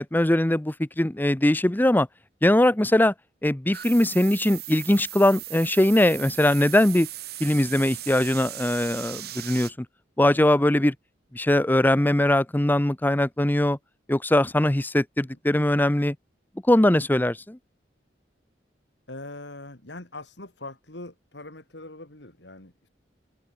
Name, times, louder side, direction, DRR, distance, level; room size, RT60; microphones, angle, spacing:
voice 1, 0.0-2.1 2.4-3.1 3.4-7.1 7.4-9.9 10.2-10.9 11.3-13.8 14.1-16.2 16.7-17.6, left 1 dB, 10° left, 0.7 m, -21 dB
sound 1, 3.7-9.7, right 14 dB, 60° right, 2.3 m, -38 dB
voice 2, 19.1-22.9, left 2 dB, 75° left, 4.2 m, -42 dB
open air
head